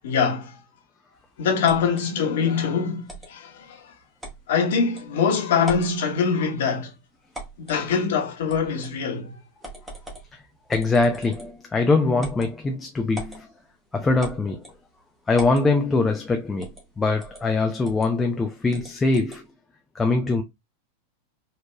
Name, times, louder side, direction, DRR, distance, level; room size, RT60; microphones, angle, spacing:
voice 1, 0.0-0.6 1.4-3.9 4.5-6.9 7.6-9.3, left 6 dB, 55° left, 1.1 m, -23 dB
sound 1, 1.6-2.0 3.1-3.3 4.2-4.4 5.0-5.1 5.6-6.0 7.3-7.8 8.5-8.9 9.6-10.3 10.7-11.6 12.2-12.5 13.1-13.4 14.2-14.8 15.3-15.7 16.6-16.9 17.2-17.4 17.8-18.1 18.7-19.4, right 1 dB, 5° right, 1.5 m, -39 dB
voice 2, 10.7-13.5 13.9-14.6 15.3-16.7 17.0-19.4 19.9-20.4, left 3 dB, 15° left, 0.5 m, -22 dB
4.4 x 2.9 x 2.3 m
figure-of-eight pair, 90°, 0 cm